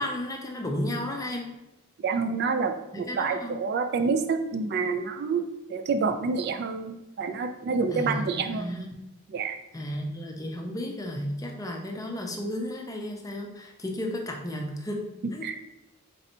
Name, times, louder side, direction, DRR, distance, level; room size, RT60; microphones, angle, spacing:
voice 1, 0.0-1.5 2.9-3.5 7.9-8.9 9.7-15.0 15.3-15.4, left 1 dB, 15° left, 1 dB, 0.5 m, -33 dB
voice 2, 2.0-5.4 5.7-8.8 9.3-9.6 15.2-15.6, right 4 dB, 50° right, 7 dB, 0.3 m, -28 dB
4.1 x 2.7 x 4.2 m, 0.95 s
head